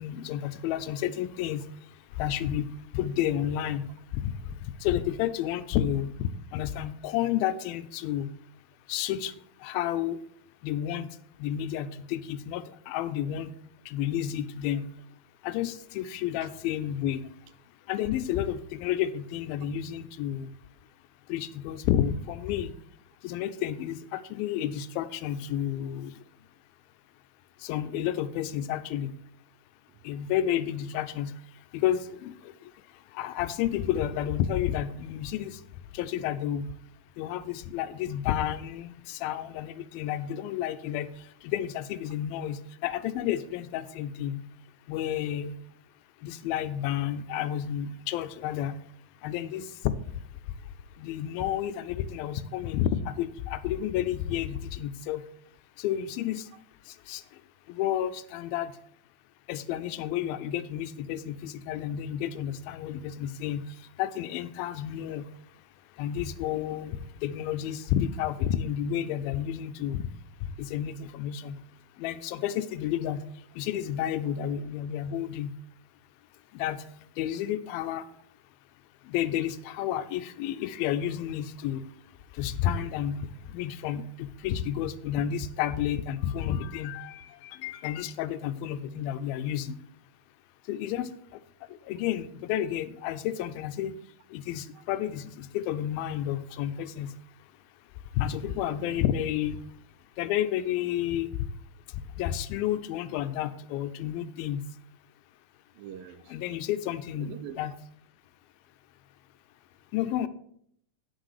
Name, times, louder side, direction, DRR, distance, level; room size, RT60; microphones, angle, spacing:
voice 1, 0.0-1.7 2.2-2.7 2.9-3.9 4.1-4.3 4.8-8.3 8.9-9.3 9.6-10.2 10.6-11.1 11.4-13.5 13.9-14.9 15.4-17.2 17.9-20.5 21.3-22.7 23.2-26.2 27.6-29.1 30.0-31.3 31.7-32.4 33.1-35.6 35.9-36.7 37.2-41.1 41.4-44.5 44.9-45.6 46.2-48.8 49.2-49.9 51.0-55.2 55.8-56.5 57.1-57.2 57.7-58.7 59.5-63.7 64.0-65.3 66.0-70.1 70.6-71.6 72.0-73.2 73.6-75.5 76.5-76.8 77.2-78.0 79.1-81.8 82.4-83.2 83.5-89.8 90.7-91.1 91.9-93.9 94.3-97.1 98.2-99.6 100.2-101.3 102.2-104.6 106.3-107.7 109.9-110.3, left 11 dB, 90° left, 12 dB, 2.4 m, -31 dB
voice 2, 98.5-99.1 105.7-106.4 107.2-107.7, right 9 dB, 80° right, 13 dB, 2.3 m, -45 dB
10.0 x 6.5 x 4.8 m, 0.68 s
omnidirectional pair, 4.1 m